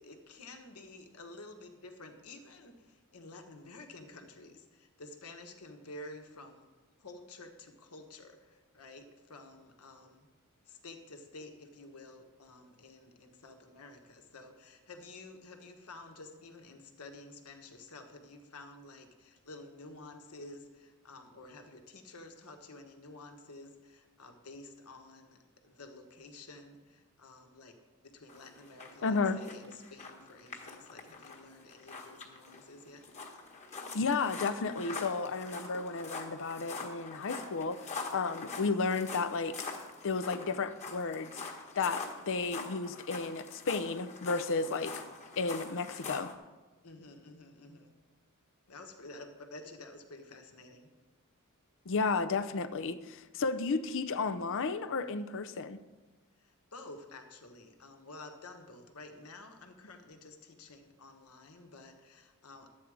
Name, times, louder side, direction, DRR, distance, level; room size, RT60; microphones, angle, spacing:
voice 1, 0.0-6.7 7.0-10.3 10.7-33.0 44.7-45.1 46.8-47.9 48.7-50.9 56.4-62.7, left 2 dB, 75° left, 5 dB, 1.3 m, -51 dB
sound 1, 28.3-46.3, left 4 dB, 30° left, 1.4 m, -44 dB
voice 2, 29.0-29.4 33.9-37.8 38.1-39.6 40.0-41.4 41.8-44.9 45.4-46.3 51.9-55.8, left 4 dB, 60° left, 12 dB, 0.6 m, -33 dB
12.0 x 8.4 x 4.9 m, 1.2 s
head